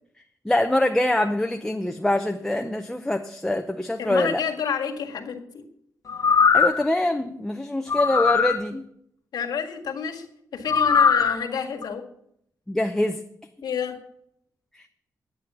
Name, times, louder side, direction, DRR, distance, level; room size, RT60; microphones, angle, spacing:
voice 1, 0.4-4.4 6.5-8.8 12.7-13.2, left 1 dB, 5° left, 5 dB, 0.6 m, -24 dB
voice 2, 4.0-5.6 9.3-10.3 10.5-12.0 13.6-14.0, left 7 dB, 85° left, 1 dB, 1.8 m, -29 dB
sound 1, 6.1-6.9 7.9-8.6 10.7-11.4 11.8-11.9, left 6 dB, 55° left, 1.1 m, -19 dB
9.8 x 9.3 x 6.8 m, 0.72 s
wide cardioid pair, 135°, 7 cm